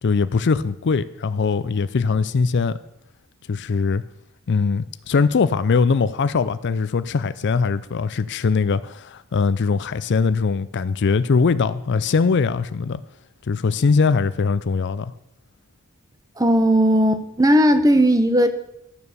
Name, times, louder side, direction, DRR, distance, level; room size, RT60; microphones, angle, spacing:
voice 1, 0.0-2.8 3.5-4.0 4.5-13.0 13.5-15.1, left 5 dB, 50° left, 0.4 m, -21 dB
voice 2, 16.4-18.5, equal, 15° right, 1.0 m, -16 dB
12.5 x 6.9 x 6.8 m
head